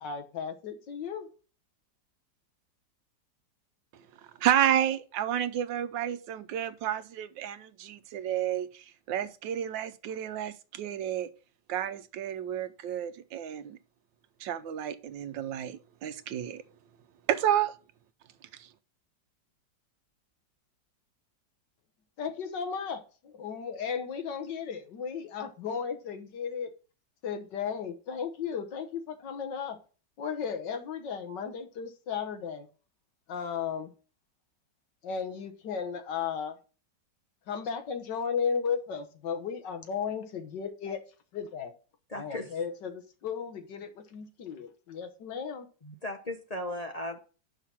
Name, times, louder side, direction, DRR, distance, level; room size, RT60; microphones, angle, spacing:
voice 1, 0.0-1.3 22.2-26.7 27.2-29.8 30.2-32.7 33.3-33.9 35.0-36.6 37.5-41.0 41.3-41.7 42.1-45.7, left 6 dB, 70° left, 1.7 m, -35 dB
voice 2, 4.4-11.3 11.7-13.8 14.4-16.6 17.3-17.7 18.6-18.7, right 10 dB, 85° right, 1.4 m, -30 dB
voice 3, 42.1-42.5 45.8-47.2, left 1 dB, 35° left, 0.6 m, -36 dB
5.8 x 5.7 x 6.1 m
omnidirectional pair, 2.0 m